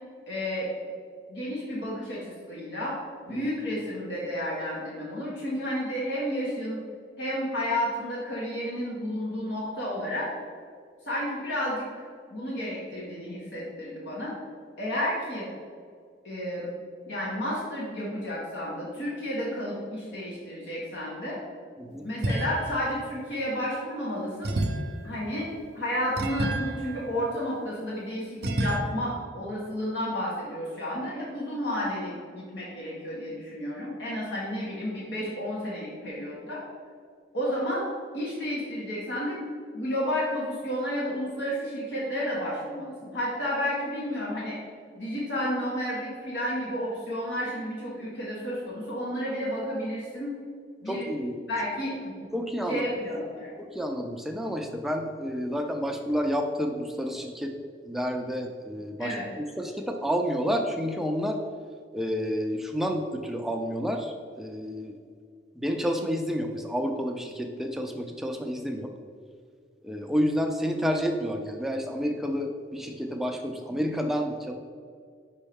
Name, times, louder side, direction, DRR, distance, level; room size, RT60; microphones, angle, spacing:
voice 1, 0.3-0.7 1.3-2.9 3.3-6.8 7.2-10.3 11.1-11.8 12.3-14.3 14.8-15.5 16.2-16.7 17.1-21.4 22.0-24.6 25.0-25.5 25.7-36.6 37.3-37.8 38.1-39.4 39.7-44.6 44.9-50.3 50.8-51.1 51.5-52.2 52.7-53.5 59.0-59.3, equal, 80° left, -6 dB, 1.3 m, -31 dB
sound 1, 22.2-22.9 24.4-27.8 28.4-28.8, right 1 dB, 60° right, 0.6 m, -31 dB
voice 2, 50.9-51.4 52.3-52.9 53.6-57.5 57.8-61.4 61.9-64.9 65.6-68.9 69.8-74.5, equal, ahead, 3 dB, 0.4 m, -30 dB
5.3 x 5.3 x 3.5 m, 2.1 s
head